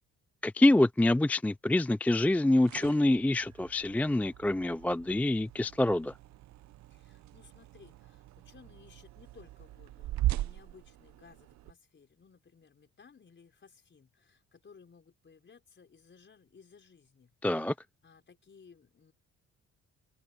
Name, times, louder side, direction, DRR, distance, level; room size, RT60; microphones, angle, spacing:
voice 1, 0.4-6.1 17.4-17.7, left 1 dB, 5° left, 0.3 m, -26 dB
sound 1, 2.3-11.7, right 15 dB, 65° right, 0.6 m, -40 dB
voice 2, 6.9-17.3 18.0-19.1, left 5 dB, 40° left, 5.6 m, -58 dB
cardioid pair, 90°, 30 cm